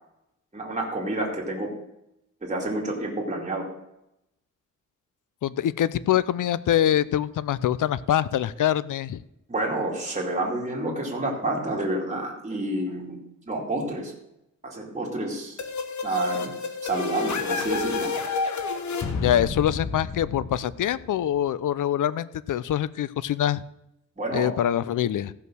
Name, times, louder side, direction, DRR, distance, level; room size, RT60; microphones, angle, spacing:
voice 1, 0.5-1.7 2.4-3.7 9.5-14.1 14.6-15.6 16.0-16.5 16.8-18.3 24.2-24.5, right 2 dB, 25° right, -3 dB, 2.5 m, -29 dB
voice 2, 5.4-9.2 19.2-23.6 24.3-25.3, left 11 dB, 85° left, 18 dB, 0.6 m, -24 dB
sound 1, 15.6-21.2, left 5 dB, 70° left, 1.3 m, -30 dB
15.5 x 5.6 x 6.2 m, 0.85 s
wide cardioid pair, 145°, 30 cm